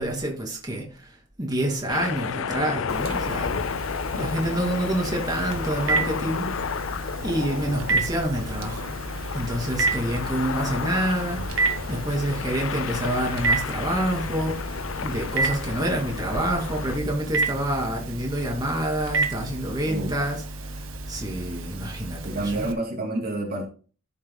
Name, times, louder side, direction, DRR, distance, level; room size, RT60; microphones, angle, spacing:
voice 1, 0.0-3.5 4.2-6.5 7.2-8.9 9.3-20.4 20.7-20.8 21.1-22.7, right 1 dB, 20° right, 2.7 m, -28 dB
sound 1, 1.9-17.0, left 6 dB, 80° left, 0.5 m, -32 dB
Telephone, 2.9-22.7, right 3 dB, 85° right, 1.6 m, -31 dB
voice 2, 19.9-20.2 22.2-23.7, right 2 dB, 50° right, 2.3 m, -28 dB
14.0 x 7.1 x 2.2 m
head